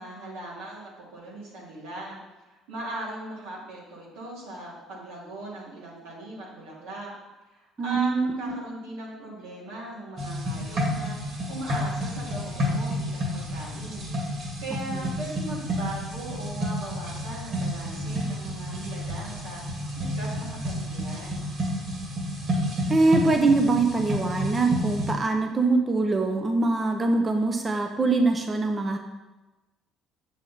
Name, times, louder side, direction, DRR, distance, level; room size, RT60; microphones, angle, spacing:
voice 1, 0.0-2.2 2.5-7.1 7.5-14.1 14.6-21.5, right 1 dB, 90° right, -5 dB, 2.8 m, -39 dB
voice 2, 7.8-8.6 14.9-15.0 22.9-29.0, right 3 dB, 25° right, 4 dB, 0.7 m, -23 dB
sound 1, 10.2-25.1, equal, 55° right, 2.5 m, -30 dB
7.5 x 7.2 x 4.3 m, 1.1 s
cardioid pair, 95°, 0 cm